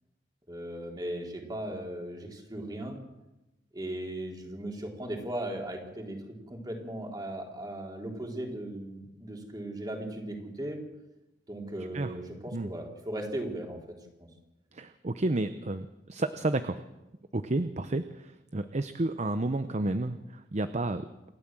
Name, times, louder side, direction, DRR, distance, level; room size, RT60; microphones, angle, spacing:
voice 1, 0.5-3.0 3.7-6.2 6.5-10.8 11.5-14.3, right 1 dB, 25° right, 1 dB, 3.9 m, -37 dB
voice 2, 14.7-16.8 17.3-21.1, right 2 dB, 40° right, 10 dB, 0.8 m, -31 dB
28.0 x 12.5 x 7.6 m, 1.0 s
head